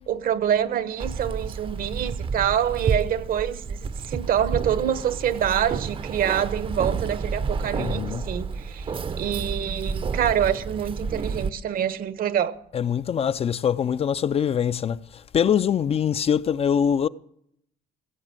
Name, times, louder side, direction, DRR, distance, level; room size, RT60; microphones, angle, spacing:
voice 1, 0.1-8.9 9.2-12.6, right 9 dB, 60° right, 0.9 m, -26 dB
Keys jangling, 1.0-11.5, right 5 dB, 30° right, 0.6 m, -30 dB
voice 2, 7.7-8.3 12.7-17.1, left 8 dB, 35° left, 0.4 m, -23 dB
17.0 x 7.3 x 7.5 m
cardioid pair, 110°, 17 cm